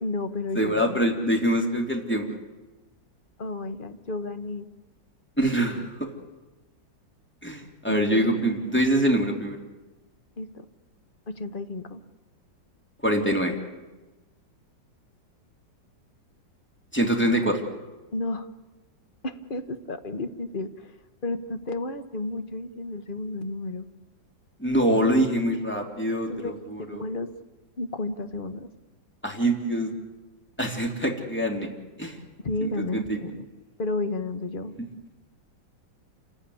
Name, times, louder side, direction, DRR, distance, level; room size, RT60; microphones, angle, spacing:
voice 1, 0.0-1.2 3.4-4.7 5.7-5.9 7.9-8.5 10.4-10.6 11.3-12.0 18.1-18.5 19.2-20.9 21.2-23.9 26.3-26.5 26.9-27.3 27.8-28.7 32.4-33.4 33.8-34.7, left 2 dB, 35° left, 10 dB, 1.1 m, -32 dB
voice 2, 0.5-2.4 5.4-5.8 7.4-9.6 13.0-13.5 16.9-17.6 24.6-27.0 29.2-29.9 30.6-31.7 32.0-32.2 32.6-33.2, right 1 dB, 5° left, 2 dB, 3.0 m, -24 dB
28.0 x 15.0 x 9.9 m, 1.1 s
omnidirectional pair, 2.0 m